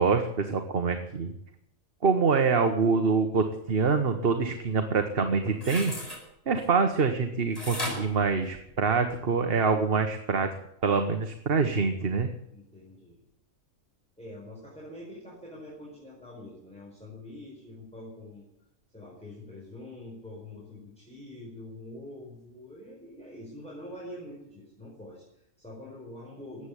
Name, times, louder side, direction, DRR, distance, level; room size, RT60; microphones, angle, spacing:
voice 1, 0.0-1.3 2.0-5.9 6.5-10.6 10.8-12.3, right 5 dB, 45° right, 6 dB, 1.4 m, -25 dB
sound 1, 5.5-6.2 7.6-9.1 9.6-9.7, left 1 dB, 25° left, 7.4 m, -36 dB
voice 2, 12.5-13.2 14.2-18.4 18.9-26.7, left 1 dB, 5° left, -4 dB, 4.6 m, -45 dB
15.0 x 9.1 x 9.9 m, 0.80 s
omnidirectional pair, 1.4 m